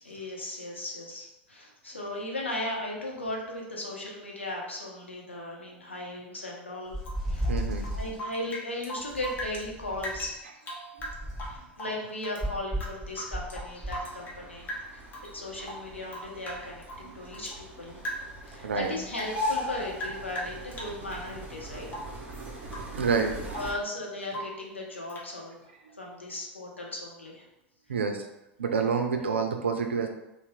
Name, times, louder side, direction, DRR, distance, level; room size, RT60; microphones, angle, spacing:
voice 1, 0.0-7.0 7.3-7.5 7.9-10.5 11.5-15.0 15.3-18.0 18.4-21.9 23.6-25.7 26.0-27.5, left 1 dB, 85° left, -2 dB, 0.6 m, -37 dB
sound 1, 6.9-8.2 9.1-10.4 11.0-11.7 12.4-14.0, equal, ahead, 1.4 m, -34 dB
Rain / Drip, 7.0-9.7 10.0-12.4 12.7-14.4 14.7-15.3 15.6-17.6 18.0-18.4 18.8-21.3 21.9-22.2 22.7-23.0 23.3-23.8 24.3-24.6 25.1-25.3, equal, 30° left, 0.8 m, -40 dB
voice 2, 7.5-7.9 10.8-11.1 18.6-18.9 22.3-22.5 22.9-23.6 27.9-28.3 28.6-30.1, right 5 dB, 75° right, 5 dB, 0.4 m, -28 dB
sound 2, 13.4-23.7, left 1 dB, 25° right, 0.7 m, -40 dB
2.7 x 2.0 x 3.4 m, 0.90 s
figure-of-eight pair, 80°, 6 cm